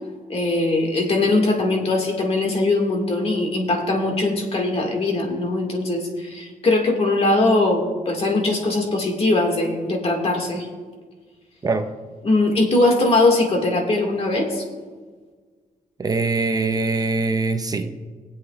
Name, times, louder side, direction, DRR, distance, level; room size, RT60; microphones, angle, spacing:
voice 1, 0.3-10.7 12.2-14.6, left 2 dB, 40° left, 1 dB, 1.8 m, -21 dB
voice 2, 16.0-18.1, right 3 dB, 25° right, 7 dB, 0.6 m, -23 dB
23.0 x 8.1 x 2.3 m, 1.5 s
wide cardioid pair, 170°, 15 cm